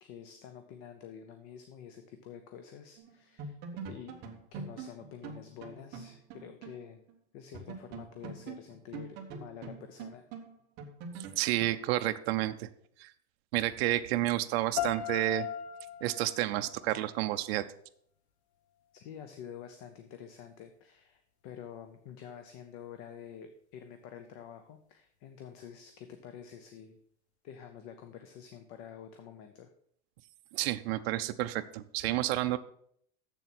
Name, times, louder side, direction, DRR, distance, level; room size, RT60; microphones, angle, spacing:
voice 1, 0.0-4.1 4.5-7.0 7.3-10.3 18.9-27.0 27.4-29.7, left 8 dB, 30° left, 8 dB, 0.5 m, -48 dB
sound 1, 3.0-3.1 3.4-6.8 7.1-7.2 7.5-11.8, right 5 dB, 30° right, 1.0 m, -44 dB
voice 2, 11.2-12.7 13.0-13.1 13.5-15.5 16.0-17.7 30.5-32.6, right 15 dB, 65° right, 9 dB, 0.6 m, -30 dB
sound 2, 14.8-17.8, left 9 dB, 75° left, 0.9 m, -39 dB
7.3 x 6.8 x 5.9 m, 0.67 s
supercardioid pair, 180°, 33 cm